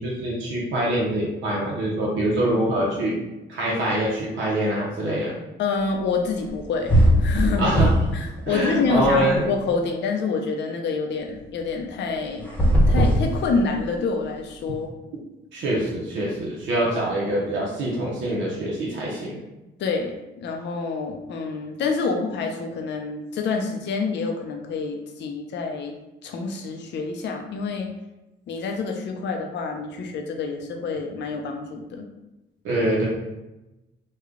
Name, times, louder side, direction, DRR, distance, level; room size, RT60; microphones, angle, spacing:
voice 1, 0.0-3.2 3.5-5.3 7.6-7.9 8.5-9.4 15.5-19.3 32.6-33.1, right 1 dB, 75° right, -4 dB, 0.8 m, -24 dB
voice 2, 5.6-6.9 7.2-7.7 8.1-12.5 12.9-14.9 19.8-25.9 26.2-27.9 28.5-32.0, left 4 dB, 60° left, 3 dB, 0.5 m, -27 dB
sound 1, 6.5-6.6 6.9-8.2 8.5-9.6 12.4-14.0, equal, 5° left, 0.9 m, -19 dB
3.2 x 2.2 x 3.6 m, 1.0 s
cardioid pair, 90°, 20 cm